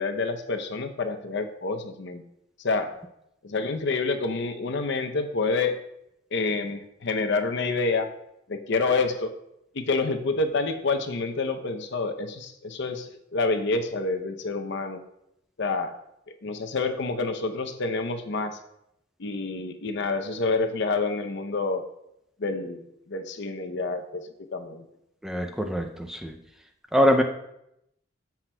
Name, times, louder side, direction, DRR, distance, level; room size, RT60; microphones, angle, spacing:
voice 1, 0.0-2.2 2.6-3.0 3.4-5.8 6.3-8.1 8.5-9.3 9.7-15.0 15.6-16.0 16.4-18.6 19.2-21.9 22.4-24.8, left 3 dB, 60° left, 7 dB, 0.6 m, -28 dB
voice 2, 25.2-26.3 26.9-27.2, equal, 5° right, 4 dB, 0.4 m, -23 dB
13.5 x 5.8 x 2.2 m, 0.81 s
head